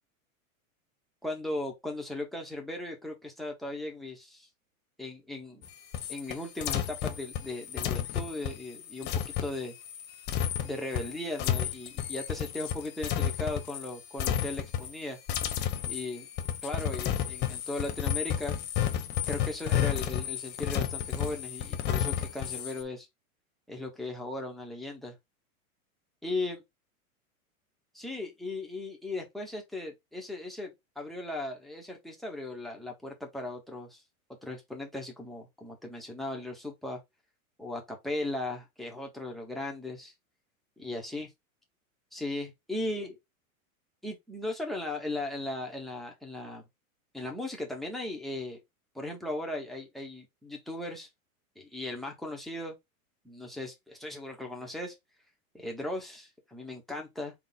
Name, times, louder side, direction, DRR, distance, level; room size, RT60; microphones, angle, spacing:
voice 1, 1.2-4.5 5.0-5.6 6.1-9.7 10.6-15.2 15.9-16.3 16.6-18.6 19.3-23.1 23.7-25.1 26.2-26.6 27.9-34.0 34.4-37.0 37.6-40.1 40.8-41.3 42.1-43.2 44.0-46.6 47.1-48.6 48.9-51.1 51.6-52.7 53.2-54.9 55.5-57.3, left 2 dB, ahead, 1.1 m, -37 dB
sound 1, 5.6-13.9 14.2-15.0 15.3-22.8, left 10 dB, 25° left, 0.5 m, -32 dB
4.0 x 2.4 x 3.8 m
hypercardioid pair, 125°, 43 cm